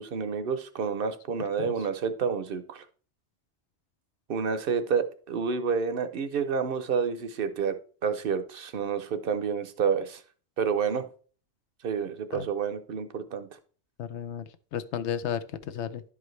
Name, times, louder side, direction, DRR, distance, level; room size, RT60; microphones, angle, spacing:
voice 1, 0.0-2.8 4.3-7.7 8.0-10.2 10.6-11.1 11.8-13.5, right 6 dB, 60° right, 11 dB, 0.8 m, -29 dB
voice 2, 14.0-16.0, left 9 dB, 85° left, 12 dB, 0.9 m, -34 dB
11.0 x 4.9 x 3.1 m, 0.41 s
omnidirectional pair, 1.2 m